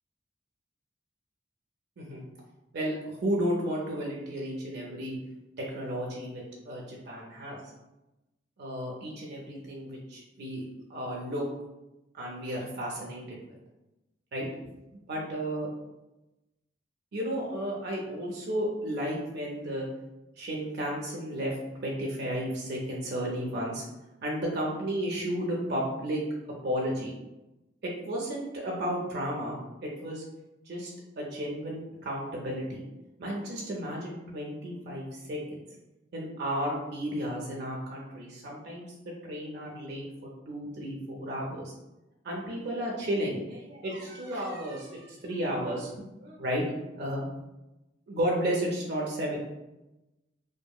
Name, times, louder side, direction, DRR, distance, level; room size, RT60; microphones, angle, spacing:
voice 1, 2.7-5.2 5.6-7.6 8.6-10.6 10.9-11.5 12.1-13.6 14.3-14.5 15.1-15.7 17.1-19.9 20.4-21.5 21.8-23.8 24.2-26.2 26.6-27.1 27.8-30.2 30.7-32.8 33.2-35.6 36.1-38.9 39.2-41.7 42.2-46.6 47.0-47.3 48.1-49.4, equal, 60° right, -3 dB, 0.5 m, -33 dB
2.7 x 2.5 x 2.3 m, 1.0 s
head